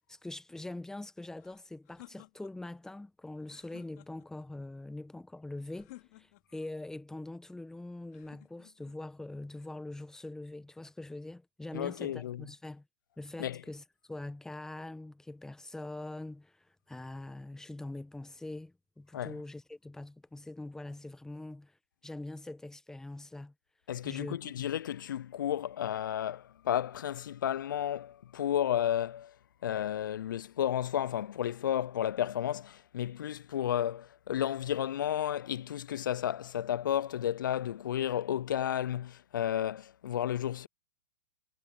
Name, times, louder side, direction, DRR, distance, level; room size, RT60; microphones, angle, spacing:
voice 1, 0.1-12.9 13.2-21.8 22.0-23.5 24.0-24.4, left 2 dB, 5° left, 1.1 m, -43 dB
sound 1, 1.4-2.8 3.4-4.5 5.7-6.7 8.1-9.0, left 20 dB, 55° left, 2.8 m, -56 dB
voice 2, 11.7-12.5 13.4-13.6 19.1-19.4 23.9-29.4 29.6-40.7, left 10 dB, 80° left, 0.4 m, -32 dB
hypercardioid pair, 115°, 11 cm